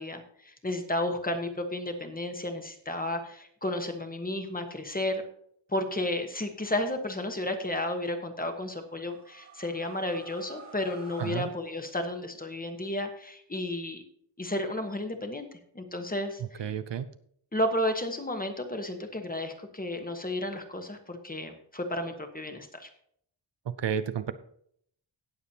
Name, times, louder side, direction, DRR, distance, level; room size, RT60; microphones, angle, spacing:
voice 1, 0.0-5.2 5.7-14.0 14.4-15.5 15.7-16.6 17.5-22.9, left 1 dB, 20° left, 5 dB, 1.2 m, -32 dB
sound 1, 8.7-12.4, right 1 dB, 35° right, 1.4 m, -51 dB
voice 2, 11.2-11.5 16.4-17.1 23.8-24.3, right 8 dB, 65° right, 12 dB, 0.7 m, -31 dB
18.0 x 7.0 x 2.9 m, 0.66 s
wide cardioid pair, 170°, 47 cm